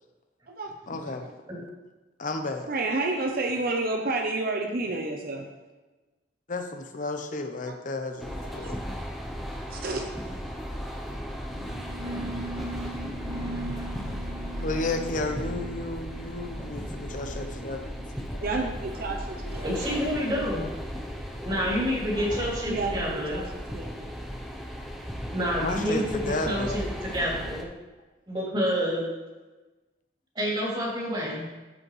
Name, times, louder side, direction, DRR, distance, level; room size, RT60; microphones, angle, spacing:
voice 1, 0.9-1.3 2.2-2.7 6.5-8.8 11.1-11.4 14.6-18.4 19.4-19.5 19.8-20.0 22.2-22.4 25.6-26.7, left 2 dB, 50° left, 6 dB, 0.8 m, -33 dB
voice 2, 2.6-5.5 8.3-8.7 9.7-10.0 18.4-19.7 22.7-24.1, right 2 dB, 55° right, 3 dB, 0.8 m, -30 dB
sound 1, 8.2-27.6, equal, ahead, 0.8 m, -36 dB
voice 3, 11.5-15.1 15.5-17.3 18.0-18.1 19.6-20.6 21.4-23.4 25.3-27.7 28.3-29.0 30.3-31.5, equal, 25° right, -6 dB, 3.2 m, -30 dB
13.5 x 5.2 x 3.3 m, 1.2 s
head